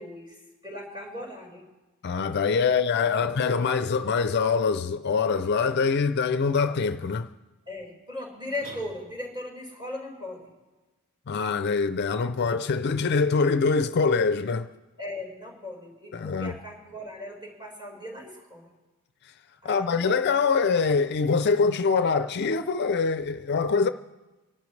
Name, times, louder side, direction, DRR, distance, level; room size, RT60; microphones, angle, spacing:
voice 1, 0.0-1.7 2.6-2.8 7.7-10.5 15.0-18.7 19.6-20.5, left 1 dB, 20° right, 4.8 m, -38 dB
voice 2, 2.0-7.3 11.3-14.7 16.1-16.5 19.6-23.9, left 5 dB, 50° left, 0.4 m, -24 dB
sound 1, 8.6-9.5, right 1 dB, 90° right, 3.6 m, -45 dB
25.5 x 12.0 x 3.2 m
head